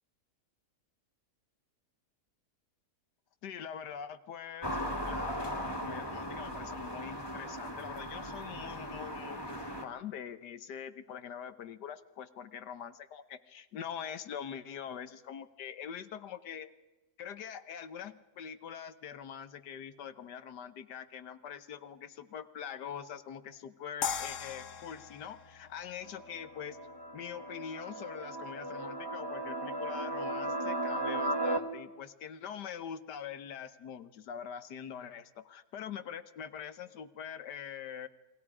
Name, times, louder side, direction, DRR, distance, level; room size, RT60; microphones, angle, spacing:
voice 1, 3.4-4.8 5.0-16.7 17.2-26.8 27.1-38.1, left 8 dB, 80° left, 11 dB, 1.6 m, -44 dB
sound 1, 4.6-9.8, equal, 15° left, 2.6 m, -38 dB
sound 2, 24.0-27.1, left 8 dB, 55° left, 1.1 m, -40 dB
sound 3, 26.0-31.6, right 2 dB, 15° right, 1.3 m, -36 dB
29.0 x 22.0 x 4.9 m, 1.1 s
omnidirectional pair, 1.8 m